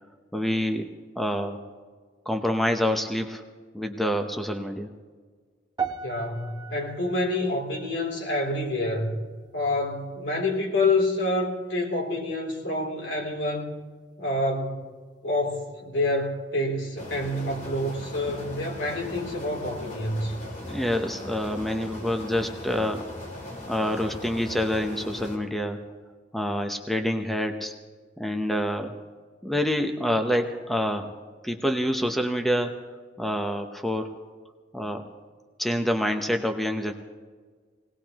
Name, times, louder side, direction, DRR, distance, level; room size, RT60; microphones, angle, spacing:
voice 1, 0.3-1.6 2.3-3.4 3.7-4.9 20.6-23.1 23.4-25.9 26.3-27.7 28.2-28.9 29.4-31.2 31.4-32.7 33.2-34.2 34.7-35.1 35.6-36.9, equal, ahead, 4 dB, 0.8 m, -27 dB
sound 1, 5.8-10.2 10.4-10.8 11.5-11.6, right 6 dB, 20° right, 1.0 m, -39 dB
voice 2, 6.0-9.1 9.5-13.7 14.2-14.9 15.2-20.3, left 2 dB, 75° left, -1 dB, 3.2 m, -27 dB
sound 2, 17.0-25.4, left 1 dB, 40° left, 2.7 m, -39 dB
21.0 x 18.5 x 3.0 m, 1.5 s
head